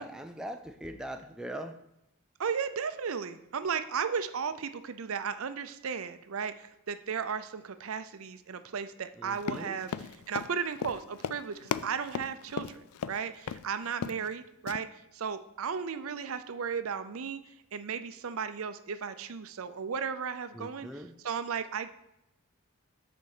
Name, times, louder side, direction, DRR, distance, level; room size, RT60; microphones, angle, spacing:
voice 1, 0.0-1.8 9.2-9.8 20.5-21.2, right 1 dB, 5° right, 5 dB, 0.4 m, -41 dB
voice 2, 2.4-17.4 17.7-21.9, right 6 dB, 70° right, 11 dB, 0.5 m, -35 dB
Run, 9.4-13.2 13.5-13.7 13.9-14.3 14.7-14.8, left 7 dB, 85° left, 0.4 m, -36 dB
6.7 x 4.4 x 6.5 m, 0.86 s
head